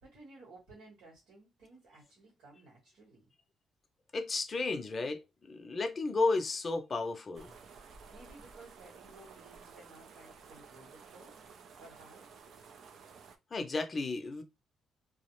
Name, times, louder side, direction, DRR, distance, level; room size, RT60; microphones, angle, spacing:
voice 1, 0.0-3.3 8.1-11.3 11.8-12.3, right 2 dB, 90° right, 1.2 m, -56 dB
voice 2, 4.1-7.5 13.5-14.4, left 3 dB, 35° left, 0.5 m, -33 dB
sound 1, 7.3-13.4, right 5 dB, 65° right, 0.4 m, -54 dB
2.4 x 2.0 x 2.9 m
cardioid pair, 90°, 0 cm